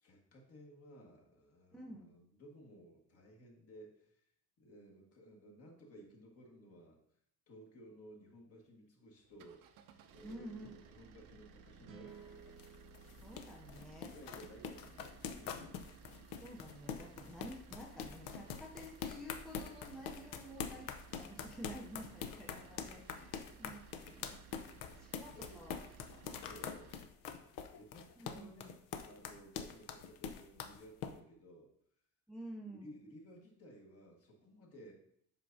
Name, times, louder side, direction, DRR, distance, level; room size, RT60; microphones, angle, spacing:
voice 1, 0.0-4.2 4.6-7.0 7.5-9.6 10.1-12.2 14.1-15.7 25.1-25.6 26.4-27.0 27.7-31.7 32.6-34.9, equal, 45° left, 0 dB, 1.6 m, -57 dB
voice 2, 1.7-2.2 10.2-10.7 13.2-14.1 16.4-20.9 21.2-24.4 25.0-25.9 26.3-26.5 28.2-28.5 32.3-33.1, equal, ahead, -2 dB, 0.5 m, -51 dB
sound 1, 9.2-27.1, right 5 dB, 70° right, 0.7 m, -59 dB
sound 2, 11.8-15.1, right 8 dB, 40° right, 0.8 m, -59 dB
sound 3, 12.1-31.1, left 7 dB, 70° left, 0.7 m, -45 dB
7.8 x 5.8 x 2.6 m, 0.69 s
cardioid pair, 155°, 34 cm